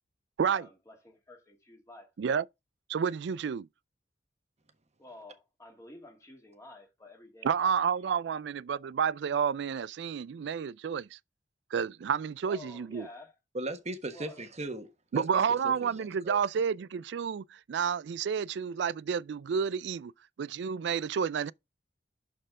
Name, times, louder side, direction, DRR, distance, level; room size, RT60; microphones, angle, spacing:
voice 1, 0.4-2.1 5.0-7.7 8.2-8.4 12.4-13.4 14.1-14.4, left 2 dB, 15° left, 2.5 m, -50 dB
voice 2, 2.9-3.7 7.4-11.2 11.7-13.1 15.1-20.1 20.4-21.5, right 7 dB, 70° right, 0.4 m, -30 dB
voice 3, 13.5-14.9 15.1-16.4, right 2 dB, 40° right, 1.4 m, -38 dB
11.5 x 4.4 x 3.6 m
head